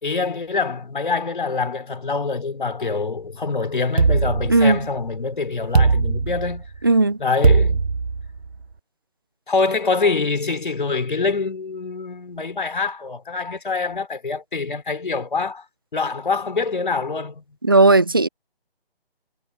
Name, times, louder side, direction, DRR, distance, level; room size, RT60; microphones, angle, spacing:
voice 1, 0.0-6.7 7.2-7.8 9.5-15.6 15.9-17.4, left 4 dB, 55° left, 3.7 m, -25 dB
sound 1, 4.0-5.1 5.7-6.8 7.4-8.6, right 4 dB, 90° right, 0.7 m, -19 dB
voice 2, 6.8-7.2 17.6-18.3, right 2 dB, 20° right, 0.6 m, -15 dB
figure-of-eight pair, 150°, 31 cm